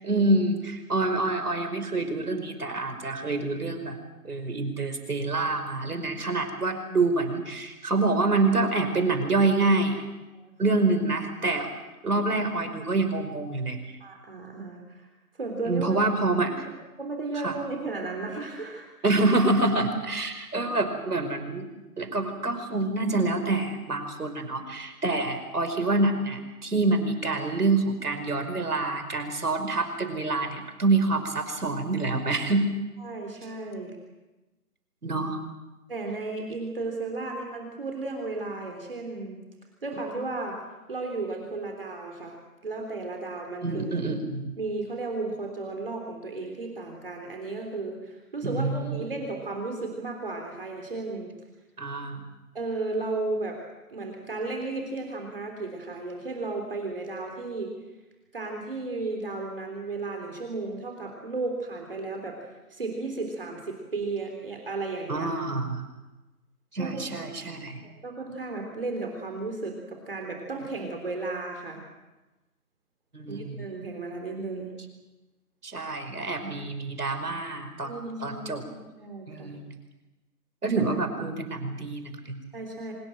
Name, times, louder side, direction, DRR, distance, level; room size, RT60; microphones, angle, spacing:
voice 1, 0.0-4.0 4.2-10.0 10.6-11.7 12.0-13.8 15.7-16.7 17.4-17.5 19.0-21.7 22.0-32.7 35.0-35.4 43.6-44.5 48.4-49.1 51.8-52.2 65.1-65.9 66.7-67.8 73.1-73.6 75.6-77.9 78.2-78.6 79.3-79.7 80.6-82.4, right 3 dB, 75° right, 7 dB, 5.3 m, -26 dB
voice 2, 10.3-10.8 14.0-15.1 15.4-16.0 16.4-16.6 17.0-18.9 33.0-34.0 35.9-39.4 39.8-40.6 40.9-42.4 42.6-44.0 44.6-51.3 52.5-53.6 53.9-57.7 58.3-65.3 66.8-67.0 67.8-71.8 73.3-74.7 77.8-79.5 82.5-82.9, right 3 dB, 35° right, 2 dB, 3.6 m, -34 dB
25.0 x 21.5 x 7.7 m, 1.1 s
hypercardioid pair, 180°, 45 cm